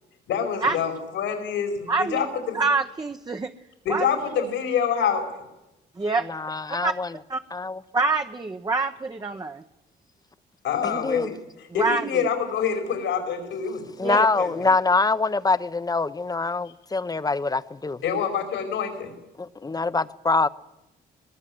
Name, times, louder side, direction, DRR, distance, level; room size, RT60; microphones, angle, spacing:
voice 1, 0.3-2.6 3.8-5.2 10.6-11.3 11.7-14.5 18.0-19.1, left 7 dB, 85° left, 4.9 m, -26 dB
voice 2, 1.9-2.2 2.5-3.5 3.9-4.1 6.0-6.3 6.8-6.9 7.3-7.4 7.9-9.6 11.8-12.0 14.0-14.3, right 3 dB, 20° right, 1.0 m, -25 dB
voice 3, 6.2-7.2 7.5-7.8 10.8-11.3 14.0-18.0 19.4-20.5, left 3 dB, 20° left, 0.9 m, -24 dB
22.5 x 20.0 x 7.9 m
cardioid pair, 85°, 19 cm